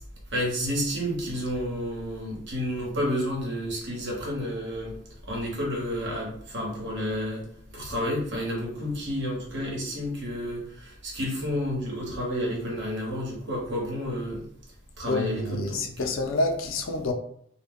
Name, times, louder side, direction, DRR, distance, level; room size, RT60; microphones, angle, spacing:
voice 1, 0.3-4.9 5.3-7.4 7.7-14.4 15.0-16.1, equal, 65° right, 1.0 m, -30 dB
voice 2, 15.1-17.1, left 2 dB, 90° left, 0.5 m, -28 dB
2.2 x 2.1 x 3.5 m
head